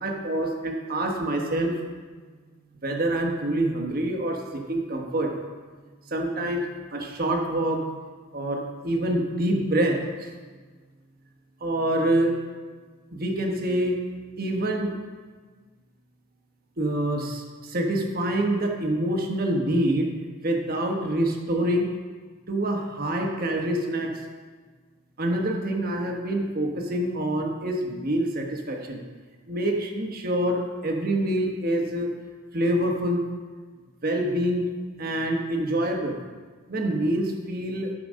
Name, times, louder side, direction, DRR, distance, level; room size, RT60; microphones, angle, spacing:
voice 1, 0.0-1.7 2.8-5.3 6.1-6.7 6.9-7.8 8.3-10.3 11.6-12.3 13.1-14.0 14.4-14.9 16.8-20.1 20.4-21.9 22.5-24.2 25.2-29.0 29.5-32.1 32.5-33.2 34.0-34.6 35.0-36.2 36.7-37.9, right 1 dB, 45° right, 2 dB, 1.2 m, -26 dB
10.0 x 5.0 x 6.2 m, 1.5 s
head